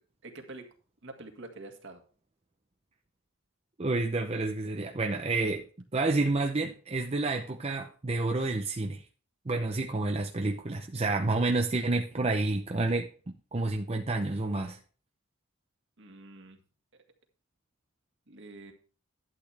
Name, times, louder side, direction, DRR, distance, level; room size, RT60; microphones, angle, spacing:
voice 1, 0.2-0.7 1.0-2.0 16.0-16.6 18.3-18.7, right 2 dB, 60° right, 4 dB, 1.9 m, -46 dB
voice 2, 3.8-5.6 5.9-9.0 9.5-13.1 13.5-14.8, right 2 dB, 30° right, 3 dB, 0.7 m, -29 dB
12.0 x 8.5 x 3.4 m, 0.40 s
head